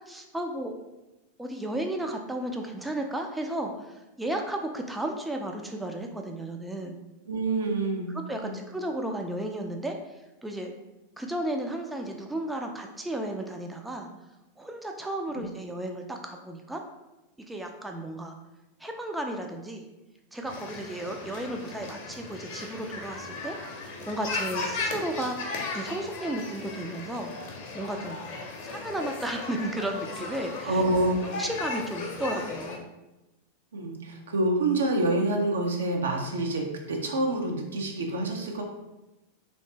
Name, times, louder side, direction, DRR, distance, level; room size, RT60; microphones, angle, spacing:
voice 1, 0.1-0.7 1.4-7.0 8.3-10.7 11.2-14.1 14.6-16.8 17.5-18.4 18.8-19.9 20.3-28.2 28.6-30.8 31.2-32.9, right 1 dB, 5° right, 3 dB, 0.3 m, -34 dB
voice 2, 7.3-8.1 8.4-8.6 30.7-31.2 33.7-38.6, right 2 dB, 65° right, 2 dB, 0.6 m, -27 dB
sound 1, 20.5-32.8, left 3 dB, 45° left, 0.7 m, -36 dB
3.1 x 3.0 x 3.1 m, 0.99 s
figure-of-eight pair, 90°, 0 cm